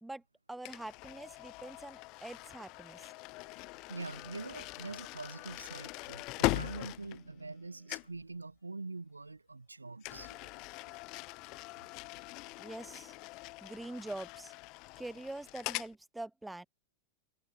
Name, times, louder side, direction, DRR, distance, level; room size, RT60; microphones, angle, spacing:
voice 1, 0.5-3.1 12.6-13.2 13.6-14.5 15.0-16.7, right 2 dB, 5° right, 1.0 m, -44 dB
sound 1, 0.6-7.6 7.9-8.2 10.0-15.9, left 25 dB, 40° left, 0.3 m, -41 dB
voice 2, 3.9-10.9, right 3 dB, 80° right, 0.6 m, -44 dB
figure-of-eight pair, 90°, 0 cm